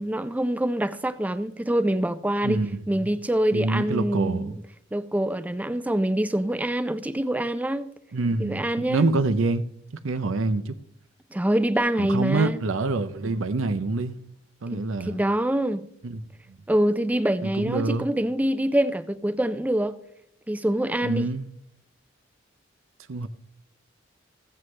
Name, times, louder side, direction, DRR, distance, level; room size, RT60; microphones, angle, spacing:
voice 1, 0.0-2.6 2.9-4.5 4.9-7.9 8.4-9.1 11.3-12.6 14.7-15.8 16.7-19.9 20.5-21.3, right 1 dB, 10° right, 0.4 m, -25 dB
voice 2, 2.4-3.1 3.5-4.6 8.1-9.7 10.0-10.8 12.0-14.2 14.6-15.2 16.0-16.2 17.4-18.1 21.0-21.5 23.1-23.3, right 3 dB, 90° right, 0.6 m, -26 dB
15.5 x 7.7 x 3.2 m
head